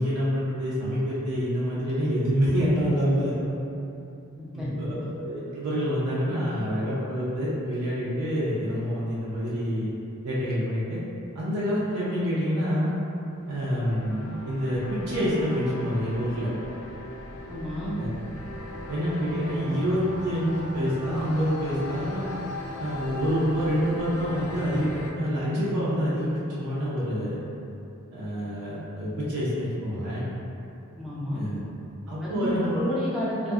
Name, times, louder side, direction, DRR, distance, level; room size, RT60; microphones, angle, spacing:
voice 1, 0.0-3.4 4.5-9.9 10.2-11.0 11.3-12.9 13.5-16.5 18.0-18.1 18.9-22.3 22.8-27.4 28.1-30.3 31.3-31.6 32.1-33.0, equal, 90° right, -8 dB, 0.5 m, -27 dB
voice 2, 4.4-5.1 17.5-17.9 31.0-31.4 32.2-33.5, equal, ahead, -8 dB, 0.4 m, -31 dB
sound 1, 13.2-25.1, left 1 dB, 70° left, 0.3 m, -39 dB
2.3 x 2.0 x 3.5 m, 2.8 s
head